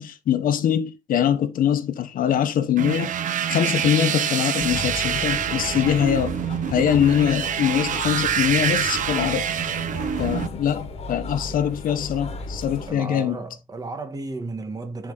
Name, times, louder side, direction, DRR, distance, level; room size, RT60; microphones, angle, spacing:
voice 1, 0.0-3.1 3.5-6.4 6.7-9.5 10.2-13.4, left 9 dB, 85° left, 1.2 m, -23 dB
sound 1, 2.8-10.5, right 9 dB, 70° right, 0.9 m, -26 dB
sound 2, 4.6-12.9, left 3 dB, 45° left, 1.7 m, -36 dB
voice 2, 12.9-15.1, right 3 dB, 25° right, 1.5 m, -33 dB
10.0 x 5.1 x 4.0 m
wide cardioid pair, 165°, 14 cm